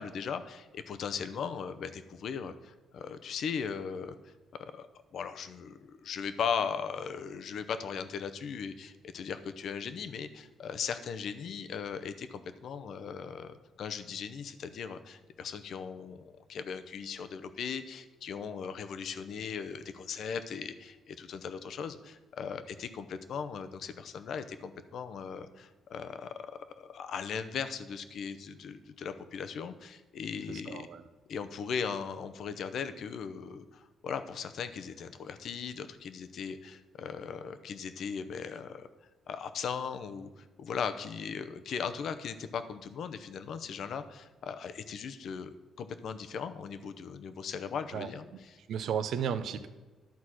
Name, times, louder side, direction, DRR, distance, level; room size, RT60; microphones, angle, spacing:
voice 1, 0.0-4.3 4.6-4.9 5.1-30.9 31.3-38.9 39.3-48.6, left 6 dB, 65° left, 10 dB, 0.7 m, -38 dB
voice 2, 30.7-31.0 47.9-48.1 48.7-49.7, right 8 dB, 70° right, 11 dB, 0.7 m, -33 dB
12.0 x 4.2 x 6.2 m, 1.2 s
cardioid pair, 90°, 0 cm